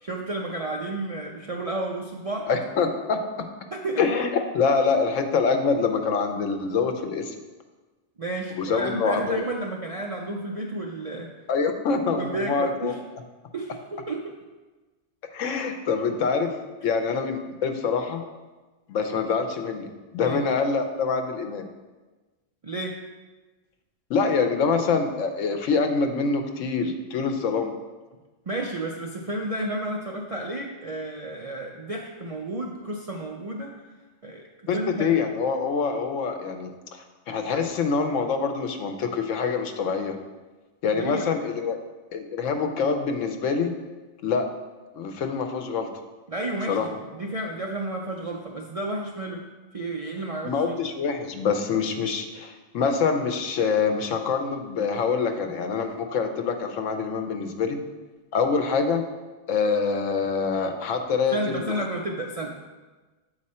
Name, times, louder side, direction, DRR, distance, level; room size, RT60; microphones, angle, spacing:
voice 1, 0.0-2.5 3.7-4.0 8.2-11.3 12.1-13.0 13.5-14.3 20.2-20.4 22.6-23.0 28.5-33.7 34.2-35.1 40.9-41.3 46.3-49.4 49.7-50.8 61.3-62.6, right 2 dB, 50° right, 0 dB, 0.4 m, -32 dB
voice 2, 2.5-3.5 4.0-7.3 8.6-9.4 11.5-12.9 15.3-18.2 18.9-21.6 24.1-27.7 34.7-40.2 40.8-41.8 42.1-43.7 44.2-44.5 44.9-45.9 46.7-46.9 50.4-57.8 58.3-59.0 59.5-61.7, left 5 dB, 85° left, 6 dB, 1.1 m, -25 dB
7.5 x 4.8 x 4.2 m, 1.2 s
omnidirectional pair, 1.3 m